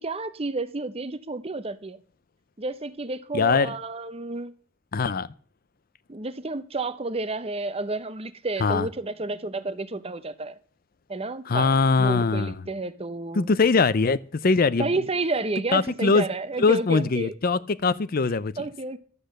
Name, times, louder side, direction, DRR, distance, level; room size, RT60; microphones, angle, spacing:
voice 1, 0.0-2.0 2.6-4.5 6.1-10.6 11.1-11.7 12.0-13.5 14.8-17.3 18.6-19.0, right 3 dB, 30° right, 0.8 m, -30 dB
voice 2, 3.3-3.8 4.9-5.3 8.6-8.9 11.5-12.7 13.4-14.9 15.7-16.3 16.6-18.5, left 4 dB, 45° left, 0.5 m, -22 dB
12.0 x 8.3 x 6.5 m
head